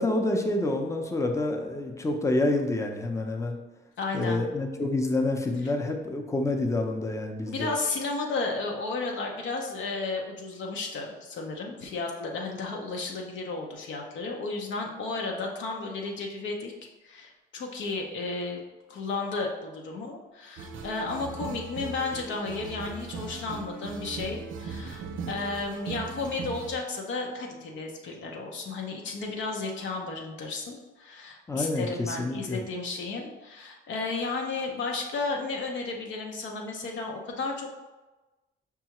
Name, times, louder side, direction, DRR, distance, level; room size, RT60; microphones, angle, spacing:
voice 1, 0.0-3.6 4.1-7.7 31.5-32.6, left 2 dB, 15° left, 3 dB, 0.5 m, -28 dB
voice 2, 4.0-4.4 7.5-16.7 17.0-18.6 18.9-37.7, left 3 dB, 70° left, 1 dB, 0.6 m, -33 dB
sound 1, 20.6-26.7, right 5 dB, 80° right, 0.5 m, -38 dB
5.4 x 2.3 x 2.9 m, 1.1 s
cardioid pair, 90°, 20 cm